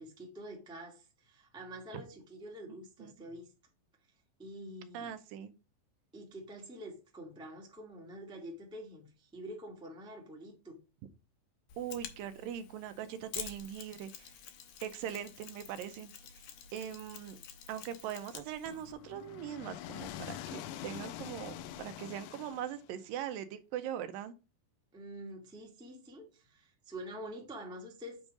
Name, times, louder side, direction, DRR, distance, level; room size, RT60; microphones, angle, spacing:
voice 1, 0.0-3.5 4.4-5.1 6.1-10.8 24.9-28.2, right 1 dB, 5° right, 0.6 m, -47 dB
voice 2, 4.9-5.5 11.8-14.4 14.8-16.1 16.7-17.4 17.7-24.3, right 10 dB, 85° right, 2.4 m, -41 dB
Mechanisms, 11.7-18.9, left 8 dB, 70° left, 2.1 m, -49 dB
sound 1, 18.7-23.1, left 11 dB, 85° left, 1.8 m, -45 dB
8.3 x 3.6 x 5.2 m
omnidirectional pair, 4.1 m